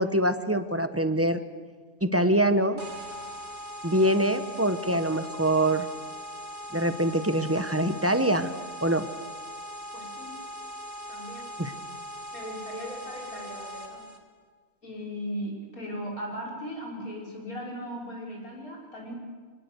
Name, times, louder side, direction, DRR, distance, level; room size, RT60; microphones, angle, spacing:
voice 1, 0.0-1.4 2.0-2.8 3.8-5.9 6.7-8.5 8.8-9.1 11.6-11.7, right 1 dB, 10° right, 10 dB, 0.8 m, -24 dB
sound 1, 2.8-14.2, equal, 50° right, 2.6 m, -40 dB
voice 2, 9.9-10.4 11.1-11.5 12.3-14.0 14.8-19.1, equal, 75° left, -2 dB, 6.0 m, -38 dB
25.0 x 20.5 x 6.9 m, 1.5 s
omnidirectional pair, 1.5 m